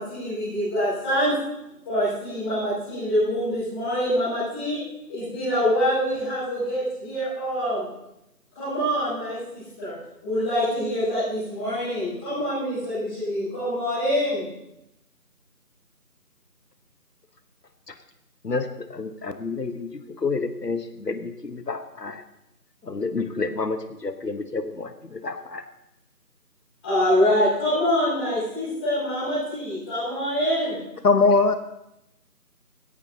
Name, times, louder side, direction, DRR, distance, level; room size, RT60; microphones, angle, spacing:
voice 1, 0.0-1.3 1.8-4.8 5.1-7.8 8.5-9.9 10.2-14.4 26.8-30.8, equal, 5° left, -16 dB, 4.8 m, -25 dB
voice 2, 18.4-22.2 22.8-25.6, left 4 dB, 85° left, 9 dB, 1.2 m, -30 dB
voice 3, 31.0-31.5, left 4 dB, 65° left, 10 dB, 0.8 m, -17 dB
17.0 x 16.0 x 2.8 m, 0.86 s
figure-of-eight pair, 170°, 48 cm